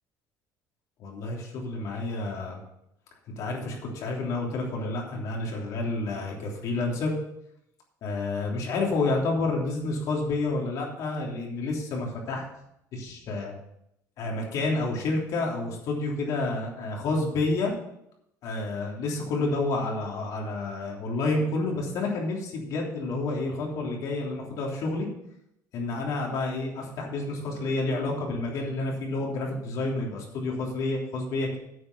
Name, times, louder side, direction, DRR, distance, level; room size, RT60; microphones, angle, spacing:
voice 1, 1.0-2.6 3.4-7.1 8.0-12.4 12.9-13.5 14.2-17.7 18.4-25.1 25.7-31.6, left 2 dB, 60° left, -1 dB, 3.3 m, -29 dB
9.4 x 7.5 x 6.8 m, 0.80 s
cardioid pair, 160°, 7 cm